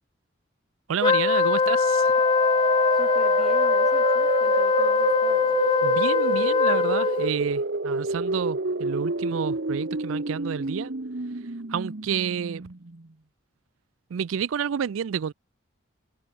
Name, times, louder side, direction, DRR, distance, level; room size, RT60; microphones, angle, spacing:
voice 1, 0.9-2.1 5.8-10.9 11.7-12.7 14.1-15.3, right 7 dB, 85° right, 0.4 m, -29 dB
Wind instrument woodwind instrument, 1.0-7.3, left 4 dB, 25° left, 0.3 m, -22 dB
sound 1, 1.4-13.1, right 3 dB, 55° right, 1.1 m, -29 dB
voice 2, 2.9-5.6, equal, ahead, 2.9 m, -43 dB
head